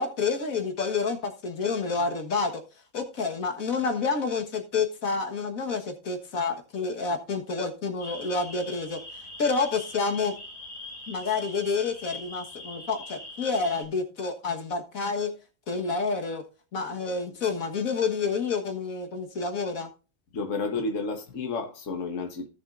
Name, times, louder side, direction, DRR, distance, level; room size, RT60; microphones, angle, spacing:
voice 1, 0.0-2.6 2.9-9.0 9.4-10.4 11.1-15.3 15.7-16.4 16.7-19.9, left 4 dB, 85° left, 1.9 m, -29 dB
sound 1, 8.0-13.8, left 2 dB, 40° left, 3.1 m, -42 dB
voice 2, 20.3-22.5, left 3 dB, 65° left, 1.7 m, -31 dB
16.5 x 7.1 x 2.6 m
omnidirectional pair, 1.4 m